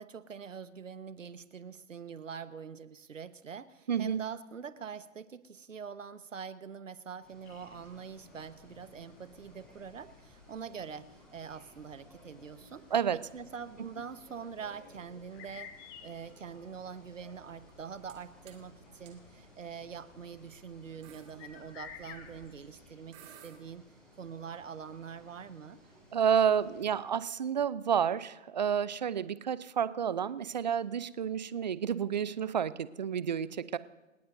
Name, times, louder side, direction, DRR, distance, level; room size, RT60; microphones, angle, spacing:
voice 1, 0.0-12.8 13.1-15.7 16.0-23.8 24.2-25.8, right 6 dB, 75° right, 12 dB, 1.3 m, -44 dB
voice 2, 3.9-4.2 12.9-13.2 26.1-33.8, right 8 dB, 35° right, 17 dB, 0.6 m, -30 dB
sound 1, 7.2-27.0, equal, ahead, 5.3 m, -59 dB
sound 2, 7.4-22.9, left 7 dB, 15° left, 1.1 m, -56 dB
sound 3, 17.7-18.2 18.5-18.7 19.1-19.2 20.0-20.2 20.6-20.7 21.0-21.3 22.7-22.8 23.1-23.6, right 10 dB, 15° right, 1.1 m, -54 dB
29.0 x 17.0 x 2.7 m, 1.1 s
hypercardioid pair, 150°, 39 cm